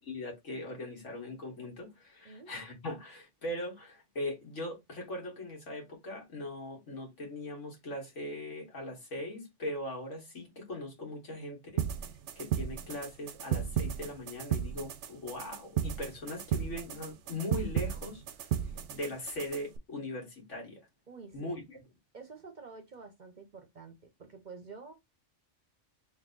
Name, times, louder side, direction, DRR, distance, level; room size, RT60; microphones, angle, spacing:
voice 1, 0.0-11.9 12.4-20.8 21.3-21.8, left 1 dB, 75° left, 1.9 m, -40 dB
voice 2, 2.2-2.6 21.1-21.6 22.1-24.9, right 4 dB, 45° right, 0.7 m, -49 dB
sound 1, 11.8-19.8, right 9 dB, 75° right, 0.9 m, -34 dB
3.5 x 2.6 x 3.8 m
omnidirectional pair, 1.3 m